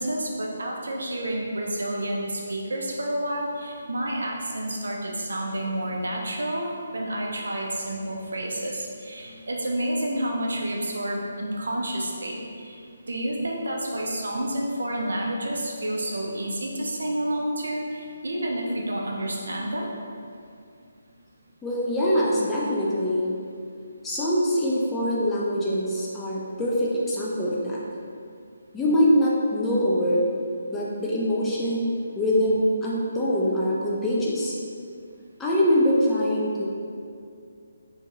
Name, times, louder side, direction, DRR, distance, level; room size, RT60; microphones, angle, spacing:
voice 1, 0.0-12.7 13.1-19.9, right 1 dB, 65° right, -1 dB, 0.4 m, -29 dB
voice 2, 21.6-23.3 24.0-27.8 28.7-30.3 30.7-34.5 35.4-36.7, equal, 10° left, -7 dB, 0.3 m, -23 dB
2.6 x 2.2 x 2.9 m, 2.3 s
figure-of-eight pair, 145°, 0 cm